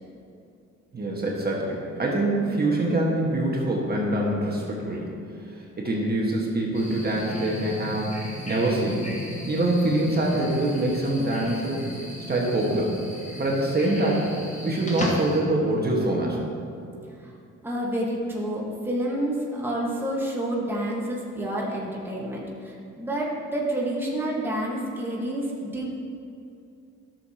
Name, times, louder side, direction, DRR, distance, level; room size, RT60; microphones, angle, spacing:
voice 1, 0.9-5.1 5.8-8.2 8.5-9.1 9.5-11.8 12.3-12.9 13.4-14.3 14.6-16.4, right 1 dB, 30° right, -2 dB, 1.4 m, -24 dB
sound 1, 6.7-15.4, left 1 dB, 25° left, 1.6 m, -36 dB
voice 2, 17.6-25.9, right 1 dB, 5° right, -4 dB, 1.4 m, -29 dB
12.0 x 6.7 x 2.9 m, 2.6 s
cardioid pair, 90°, 30 cm